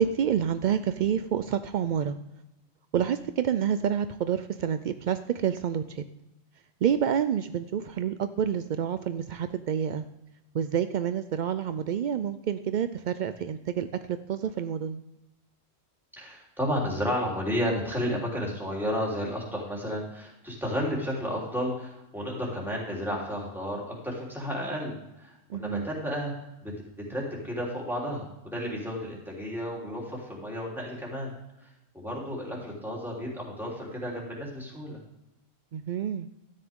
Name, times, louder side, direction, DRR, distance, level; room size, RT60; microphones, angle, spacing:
voice 1, 0.0-2.1 2.9-6.0 6.8-10.0 10.5-13.9 14.3-15.0 25.5-25.9 35.7-36.3, right 8 dB, 70° right, 11 dB, 0.4 m, -28 dB
voice 2, 16.2-26.7 27.1-31.3 31.6-31.7 31.9-35.0, equal, ahead, -4 dB, 3.3 m, -32 dB
13.0 x 9.3 x 3.6 m, 0.91 s
omnidirectional pair, 1.3 m